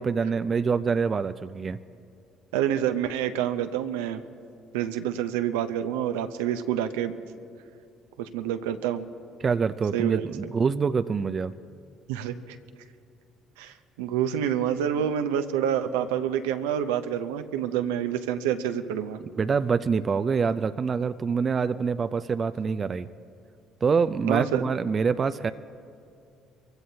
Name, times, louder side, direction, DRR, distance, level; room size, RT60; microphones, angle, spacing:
voice 1, 0.0-1.8 9.4-11.5 19.4-23.1 23.8-25.5, right 5 dB, 40° right, 12 dB, 0.4 m, -25 dB
voice 2, 2.5-4.2 4.7-7.1 8.2-9.0 9.9-10.2 12.1-12.6 13.6-19.2 24.3-24.7, right 10 dB, 80° right, 9 dB, 0.7 m, -27 dB
24.0 x 16.0 x 2.8 m, 2.4 s
hypercardioid pair, 55°, 0 cm